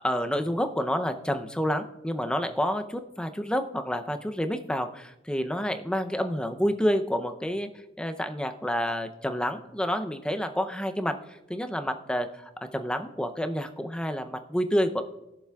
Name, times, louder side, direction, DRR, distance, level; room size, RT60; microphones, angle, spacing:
voice 1, 0.0-7.7 8.0-11.2 11.5-15.0, equal, 5° left, 7 dB, 0.6 m, -29 dB
20.0 x 7.0 x 2.3 m, 0.93 s
head